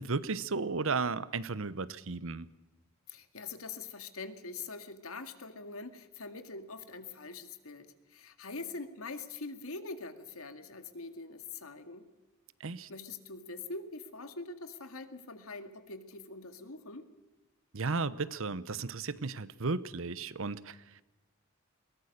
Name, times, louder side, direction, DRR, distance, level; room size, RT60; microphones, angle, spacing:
voice 1, 0.0-2.5 12.6-12.9 17.7-21.0, right 4 dB, 65° right, 17 dB, 0.9 m, -34 dB
voice 2, 3.1-12.0 12.9-17.1, left 3 dB, 85° left, 8 dB, 2.1 m, -44 dB
21.5 x 19.5 x 6.7 m, 1.1 s
head